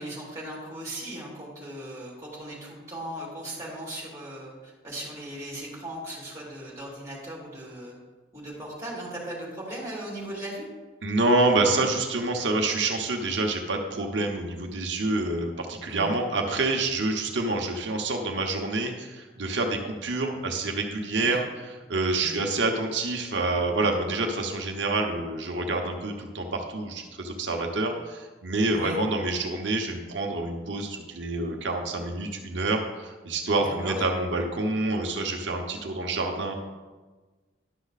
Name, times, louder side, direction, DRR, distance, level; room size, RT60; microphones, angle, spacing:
voice 1, 0.0-8.0 8.3-10.7 15.9-16.1 21.2-21.4 22.2-22.5 28.7-29.0 33.6-34.0, right 1 dB, 15° right, -5 dB, 2.7 m, -38 dB
voice 2, 11.0-36.5, right 2 dB, 90° right, 2 dB, 1.0 m, -27 dB
11.0 x 6.2 x 4.1 m, 1.3 s
head